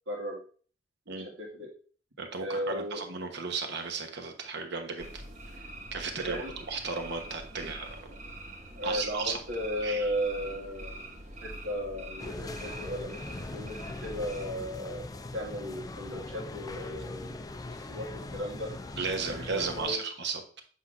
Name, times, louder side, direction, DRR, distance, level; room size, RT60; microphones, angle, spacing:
voice 1, 0.1-0.4 1.1-1.7 2.4-3.0 6.3-6.5 7.6-7.7 8.8-15.1 15.3-17.4 17.8-18.8 19.2-20.0, equal, 85° right, -2 dB, 2.1 m, -36 dB
voice 2, 2.2-5.2 5.9-7.9 8.8-9.4 9.8-10.1 19.0-20.6, right 4 dB, 60° right, 4 dB, 1.1 m, -34 dB
sound 1, 5.0-14.5, right 1 dB, 40° right, 1.3 m, -44 dB
sound 2, 12.2-20.0, left 2 dB, 20° left, 0.4 m, -41 dB
8.1 x 5.7 x 2.6 m, 0.42 s
head